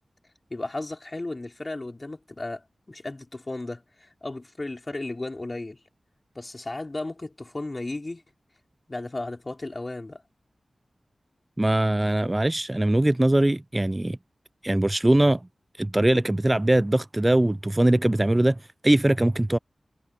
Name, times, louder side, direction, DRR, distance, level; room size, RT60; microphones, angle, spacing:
voice 1, 0.5-5.8 6.3-8.2 8.9-10.2, left 2 dB, 40° left, 4.5 m, -34 dB
voice 2, 11.6-14.2 14.6-15.4 15.8-19.6, right 1 dB, 25° right, 0.3 m, -21 dB
cardioid pair, 50°, 0 cm